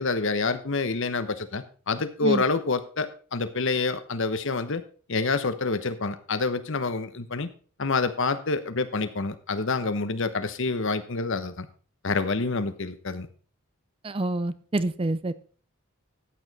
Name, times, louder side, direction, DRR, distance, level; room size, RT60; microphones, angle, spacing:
voice 1, 0.0-4.8 5.1-7.5 7.8-11.7 12.0-13.3, left 3 dB, 60° left, 11 dB, 1.0 m, -27 dB
voice 2, 14.0-15.3, right 2 dB, 25° right, 15 dB, 0.4 m, -27 dB
14.0 x 8.8 x 4.1 m, 0.41 s
head